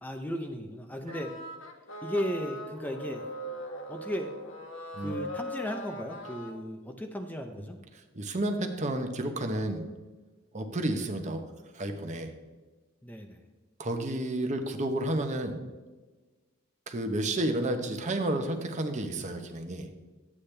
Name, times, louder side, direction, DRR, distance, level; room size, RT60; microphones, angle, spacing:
voice 1, 0.0-1.4 2.0-3.3 3.9-4.3 5.0-7.8 13.0-13.4, equal, 10° left, 4 dB, 0.6 m, -35 dB
sound 1, 1.1-6.5, equal, 65° left, 1.2 m, -40 dB
voice 2, 8.1-9.8 10.5-11.4 11.7-12.3 13.8-15.6 16.9-19.9, right 1 dB, 35° right, 5 dB, 0.9 m, -31 dB
11.5 x 8.6 x 3.3 m, 1.3 s
head